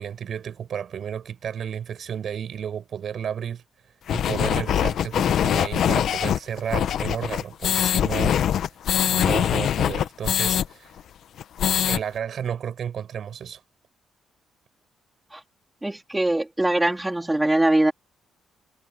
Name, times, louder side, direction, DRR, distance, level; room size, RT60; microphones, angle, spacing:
voice 1, 0.0-3.6 4.1-8.4 9.1-10.9 11.9-13.6, right 8 dB, 60° right, 6.6 m, -32 dB
sound 1, 4.1-10.7 11.0-11.1 11.4-12.0, left 9 dB, 70° left, 0.9 m, -23 dB
voice 2, 15.8-17.9, right 1 dB, 10° right, 3.9 m, -22 dB
cardioid pair, 90°, 0 cm